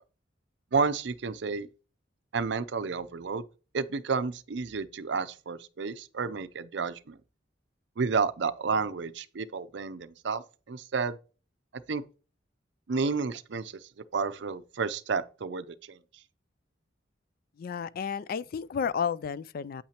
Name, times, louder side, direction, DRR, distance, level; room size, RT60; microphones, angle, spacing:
voice 1, 0.7-1.7 2.3-3.4 3.7-7.2 8.0-11.2 11.9-12.0 12.9-16.0, right 4 dB, 65° right, 0.5 m, -31 dB
voice 2, 17.6-19.8, left 7 dB, 50° left, 0.3 m, -32 dB
8.6 x 8.4 x 2.9 m
head